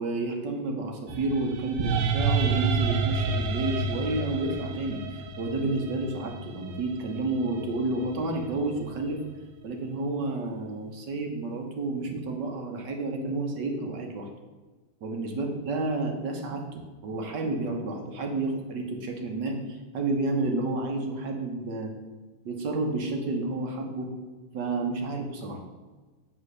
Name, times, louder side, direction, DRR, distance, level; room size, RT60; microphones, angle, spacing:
voice 1, 0.0-9.2 9.6-14.3 15.0-21.9 22.4-24.1 24.5-25.6, right 2 dB, 60° right, 2 dB, 1.7 m, -30 dB
sound 1, 1.1-9.2, right 4 dB, 85° right, 1.5 m, -30 dB
7.9 x 4.4 x 6.5 m, 1.3 s
omnidirectional pair, 2.3 m